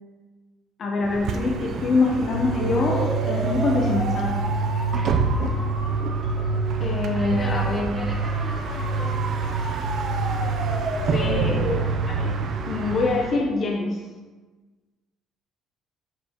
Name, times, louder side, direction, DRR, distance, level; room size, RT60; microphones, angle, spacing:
voice 1, 0.8-4.4 6.8-7.9 11.1-11.6 12.1-12.3 12.7-14.0, left 3 dB, 35° left, -1 dB, 0.6 m, -25 dB
Bus, 1.0-13.5, right 4 dB, 45° right, 0.5 m, -31 dB
sound 1, 2.0-13.4, right 3 dB, 65° right, 1.3 m, -27 dB
voice 2, 4.9-5.4 7.1-9.1 9.7-9.8 11.3-11.8, equal, 5° right, -5 dB, 1.5 m, -39 dB
7.0 x 5.3 x 2.9 m, 1.3 s
cardioid pair, 175°, 0 cm